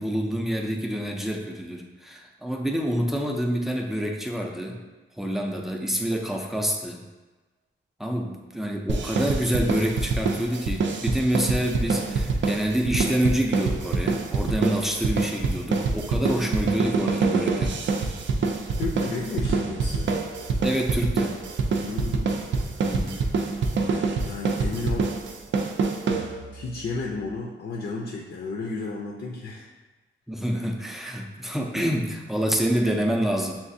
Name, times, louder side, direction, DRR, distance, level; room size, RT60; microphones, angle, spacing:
voice 1, 0.0-4.8 5.2-7.0 8.0-17.8 20.6-21.4 22.8-23.2 30.3-33.6, equal, ahead, 1 dB, 0.4 m, -27 dB
sound 1, 8.9-26.7, right 4 dB, 60° right, 0.5 m, -26 dB
voice 2, 18.8-20.1 21.8-22.4 23.7-25.1 26.5-29.7, left 3 dB, 60° left, -1 dB, 0.5 m, -33 dB
7.1 x 2.4 x 2.6 m, 1.2 s
wide cardioid pair, 150°, 21 cm